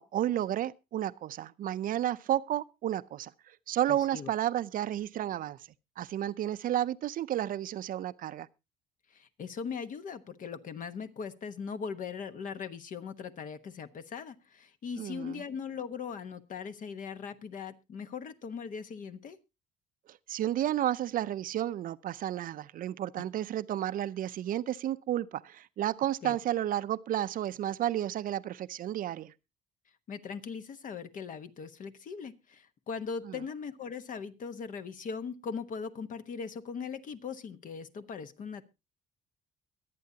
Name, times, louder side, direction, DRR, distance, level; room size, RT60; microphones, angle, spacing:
voice 1, 0.0-5.6 6.0-8.5 15.0-15.4 20.1-29.3 33.2-33.4, right 12 dB, 55° right, 0.5 m, -32 dB
voice 2, 3.9-4.3 9.1-19.4 23.2-23.3 26.2-26.4 30.1-38.6, left 6 dB, 50° left, 1.2 m, -40 dB
22.5 x 8.5 x 2.8 m
cardioid pair, 110°, 17 cm